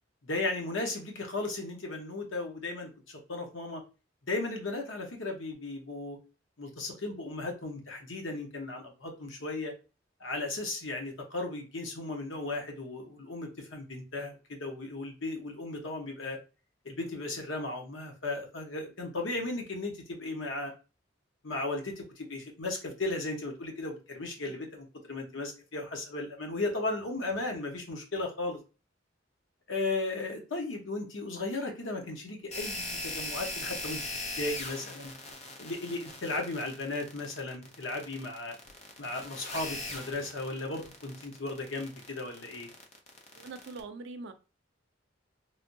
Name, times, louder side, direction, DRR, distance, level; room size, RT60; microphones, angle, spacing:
voice 1, 0.2-3.8 4.3-6.2 6.6-9.7 10.2-16.4 16.8-20.7 21.4-28.6 29.7-34.0 34.4-35.1 35.6-38.5 39.0-42.7, left 2 dB, 75° left, 1.0 m, -36 dB
sound 1, 32.5-43.8, left 2 dB, 35° left, 0.6 m, -40 dB
voice 2, 43.3-44.3, right 3 dB, 65° right, 0.5 m, -43 dB
3.3 x 2.6 x 2.7 m
head